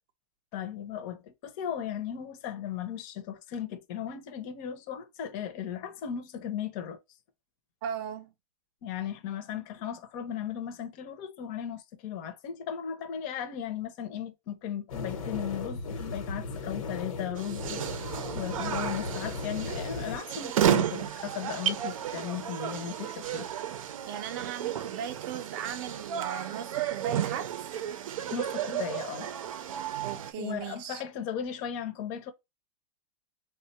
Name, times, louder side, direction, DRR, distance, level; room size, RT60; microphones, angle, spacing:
voice 1, 0.5-7.0 8.8-18.0 18.3-23.5 28.3-29.3 30.4-32.3, left 9 dB, 35° left, 0.6 m, -36 dB
voice 2, 7.8-8.3 24.0-27.7 30.0-31.0, right 9 dB, 40° right, 0.5 m, -37 dB
sound 1, 14.9-20.2, left 3 dB, 85° left, 1.0 m, -36 dB
sound 2, 17.4-30.3, right 10 dB, 80° right, 0.6 m, -32 dB
3.5 x 2.2 x 4.0 m
supercardioid pair, 160°, 17 cm